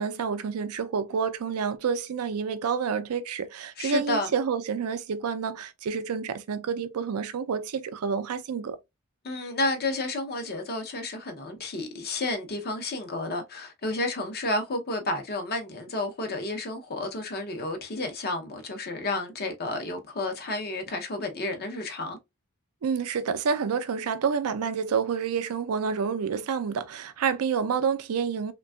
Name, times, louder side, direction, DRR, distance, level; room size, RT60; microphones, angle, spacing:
voice 1, 0.0-8.8 22.8-28.5, right 6 dB, 80° right, 0.4 m, -28 dB
voice 2, 3.8-4.3 9.2-22.2, left 2 dB, 45° left, 0.7 m, -31 dB
3.4 x 2.2 x 2.2 m
head